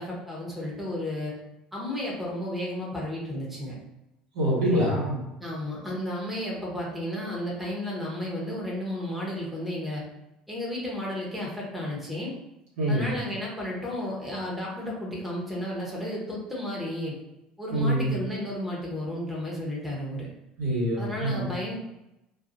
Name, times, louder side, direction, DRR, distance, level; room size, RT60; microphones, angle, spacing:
voice 1, 0.0-1.3 1.7-3.7 5.4-10.0 10.5-12.4 12.9-17.1 17.6-20.3 21.0-21.8, left 1 dB, 5° right, -4 dB, 1.0 m, -33 dB
voice 2, 4.3-5.2 12.8-13.1 17.7-18.1 20.6-21.4, right 1 dB, 70° right, -7 dB, 1.4 m, -25 dB
2.6 x 2.5 x 2.6 m, 0.90 s
figure-of-eight pair, 60°, 4 cm